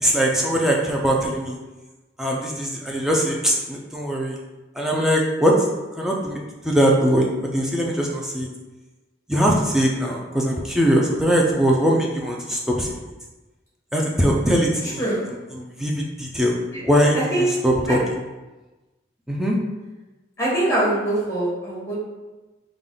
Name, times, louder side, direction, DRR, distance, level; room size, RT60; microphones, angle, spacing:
voice 1, 0.0-1.6 2.2-4.4 4.8-5.6 6.0-6.4 6.6-7.3 7.5-8.5 9.3-12.9 13.9-15.0 15.5-18.0 19.3-19.6, equal, 5° right, -2 dB, 0.4 m, -21 dB
voice 2, 17.1-17.4 17.9-18.0 20.4-21.9, right 1 dB, 15° left, -7 dB, 1.4 m, -23 dB
3.5 x 2.4 x 3.8 m, 1.1 s
head